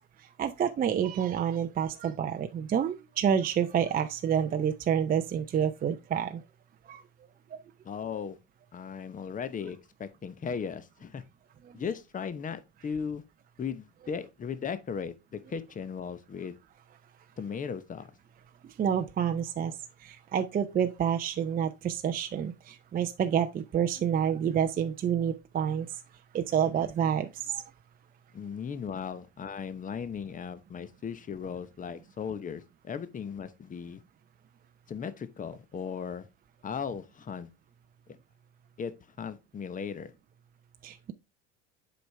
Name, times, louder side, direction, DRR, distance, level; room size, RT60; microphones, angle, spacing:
voice 1, 0.4-6.4 6.9-7.0 7.5-7.6 18.8-19.7 20.0-25.9 26.3-27.6 40.8-41.1, right 8 dB, 25° right, 0.5 m, -28 dB
voice 2, 7.8-8.4 8.7-11.2 11.7-13.2 13.6-16.6 17.4-18.1 28.3-34.0 34.9-36.3 36.6-37.5 38.8-38.9 39.2-40.1, left 6 dB, 20° left, 0.8 m, -37 dB
7.9 x 4.9 x 3.3 m
hypercardioid pair, 90°, 36 cm